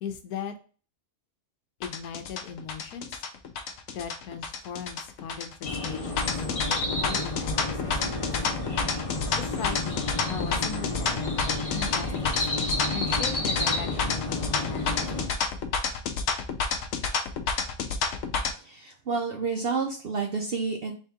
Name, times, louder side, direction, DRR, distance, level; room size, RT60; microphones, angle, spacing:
voice 1, 0.0-0.5 1.8-3.2 3.9-6.4 6.7-8.3 9.4-15.4, left 7 dB, 85° left, 7 dB, 1.2 m, -39 dB
sound 1, 1.8-18.5, left 5 dB, 65° left, 0.8 m, -29 dB
sound 2, 5.6-15.3, left 2 dB, 30° left, 0.7 m, -31 dB
voice 2, 18.6-20.9, right 4 dB, 65° right, 2 dB, 0.6 m, -29 dB
4.3 x 2.8 x 3.5 m, 0.37 s
omnidirectional pair, 1.6 m